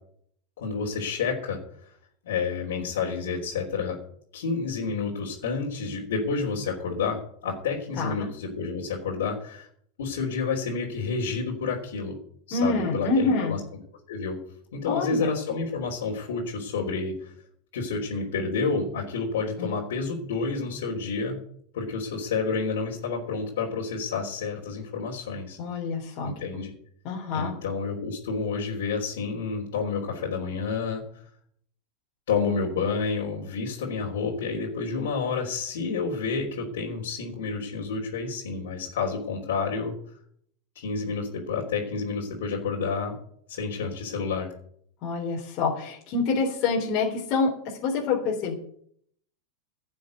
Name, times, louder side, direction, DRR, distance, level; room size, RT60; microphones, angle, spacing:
voice 1, 0.6-1.6 2.2-4.0 4.3-9.7 10.0-12.2 12.5-13.6 14.1-14.4 14.7-17.3 17.7-21.4 21.7-25.6 26.2-26.7 27.3-31.2 32.3-39.9 40.7-43.2 43.5-44.5, left 4 dB, 85° left, -3 dB, 3.5 m, -29 dB
voice 2, 8.0-8.3 12.5-13.6 14.9-15.3 19.6-19.7 25.6-26.3 27.0-27.5 45.0-48.5, left 4 dB, 45° left, -3 dB, 3.6 m, -26 dB
11.5 x 7.0 x 9.4 m, 0.64 s
supercardioid pair, 140°, 0 cm